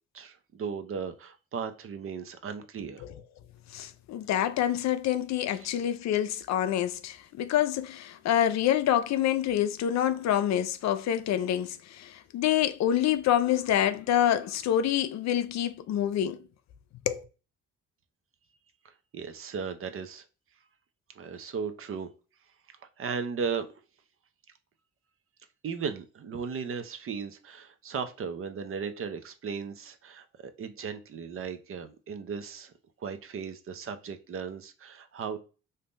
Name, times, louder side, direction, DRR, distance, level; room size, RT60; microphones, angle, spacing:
voice 1, 0.1-3.0 5.5-5.7 18.8-20.2 21.2-22.1 23.0-23.7 25.6-32.7 33.0-35.4, right 6 dB, 45° right, 0.6 m, -36 dB
voice 2, 3.7-16.4 17.1-17.2, left 11 dB, 65° left, 0.4 m, -27 dB
2.7 x 2.5 x 3.5 m
cardioid pair, 90°, 30 cm